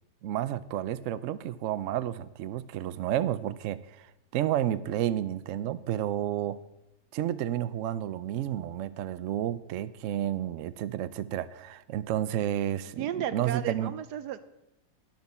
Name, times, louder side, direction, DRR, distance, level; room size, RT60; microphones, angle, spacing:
voice 1, 0.2-4.1 4.3-6.6 7.1-13.1 13.3-13.9, right 11 dB, 90° right, 14 dB, 0.6 m, -31 dB
voice 2, 13.0-14.4, right 10 dB, 70° right, 14 dB, 1.1 m, -33 dB
12.0 x 10.5 x 4.2 m, 0.88 s
omnidirectional pair, 1.9 m